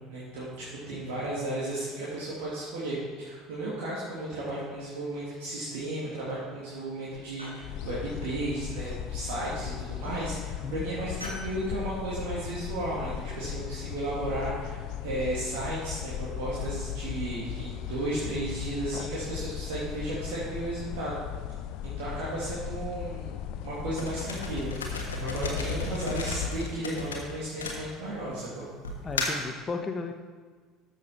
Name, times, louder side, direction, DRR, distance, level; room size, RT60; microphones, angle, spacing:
voice 1, 0.1-21.2 21.8-23.3 23.6-24.7 25.2-28.7, right 1 dB, 65° right, -8 dB, 2.4 m, -34 dB
sound 1, 3.5-4.2 4.6-5.2 6.0-6.5 6.8-7.7 9.1-9.6 10.0-10.3 11.2-11.5, equal, 90° right, 2.6 m, -46 dB
sound 2, 7.6-26.8, left 10 dB, 55° left, 0.5 m, -37 dB
sound 3, 24.0-28.3 28.8-29.5, left 3 dB, 75° left, 1.4 m, -33 dB
voice 2, 25.2-25.6 29.0-30.1, left 4 dB, 30° left, 6 dB, 1.1 m, -35 dB
13.5 x 6.7 x 4.3 m, 1.5 s
figure-of-eight pair, 65°, 0 cm